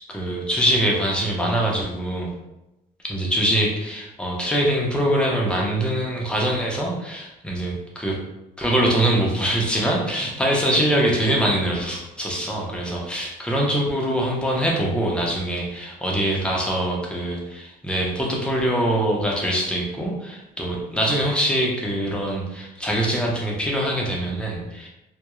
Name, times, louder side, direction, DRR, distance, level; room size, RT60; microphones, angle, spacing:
voice 1, 0.1-2.3 3.1-8.2 8.6-24.9, right 1 dB, 5° left, -2 dB, 0.6 m, -23 dB
2.3 x 2.0 x 2.9 m, 0.95 s
cardioid pair, 110°, 17 cm